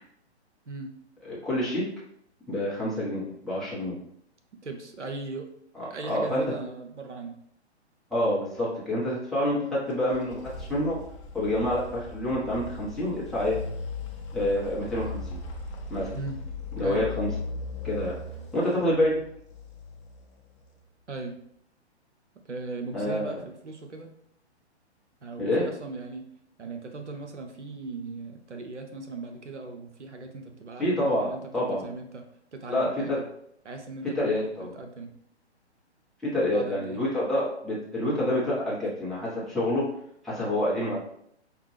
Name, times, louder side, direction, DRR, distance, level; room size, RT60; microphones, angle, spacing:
voice 1, 1.2-1.9 2.5-4.0 5.7-6.4 8.1-10.4 10.7-11.0 11.3-13.6 14.3-15.2 15.9-16.1 16.8-17.3 17.8-18.2 18.5-19.2 22.9-23.3 25.4-25.7 30.8-31.9 32.7-33.2 34.1-34.8 36.2-39.9 40.2-41.0, left 1 dB, ahead, -9 dB, 0.9 m, -27 dB
voice 2, 4.6-5.5 5.9-7.3 16.1-16.4 16.8-17.1 21.1-21.4 22.5-24.1 25.2-26.3 26.6-32.2 32.5-33.2 33.6-34.1 34.7-35.1 36.5-37.0, right 3 dB, 85° right, 4 dB, 0.8 m, -38 dB
sound 1, 9.9-20.7, left 3 dB, 25° left, 0.6 m, -38 dB
5.1 x 2.4 x 3.2 m, 0.71 s
figure-of-eight pair, 125°, 34 cm